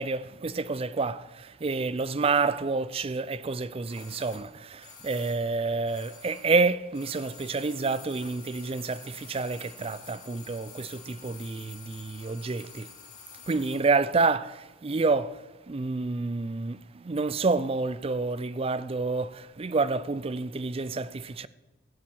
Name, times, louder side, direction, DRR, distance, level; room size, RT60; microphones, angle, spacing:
voice 1, 0.0-12.9 13.5-21.5, right 3 dB, 30° right, 0.4 m, -29 dB
sound 1, 3.9-6.6 6.9-13.9 14.1-14.2, left 7 dB, 40° left, 2.1 m, -49 dB
15.5 x 7.4 x 9.0 m
head